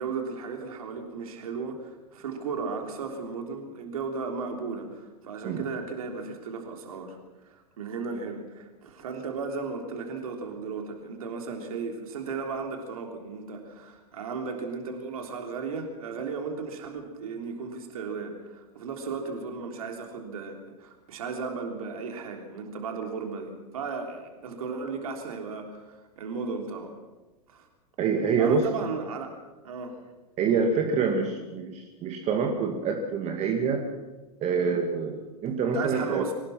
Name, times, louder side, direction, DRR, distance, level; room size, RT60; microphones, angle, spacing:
voice 1, 0.0-26.9 27.5-27.7 28.4-29.4 29.6-30.0 35.7-36.3, right 4 dB, 65° right, 3 dB, 3.5 m, -35 dB
voice 2, 28.0-28.7 30.4-33.9 34.4-36.2, right 5 dB, 35° right, 3 dB, 2.3 m, -26 dB
24.5 x 18.5 x 6.1 m, 1.2 s
figure-of-eight pair, 90°, 20 cm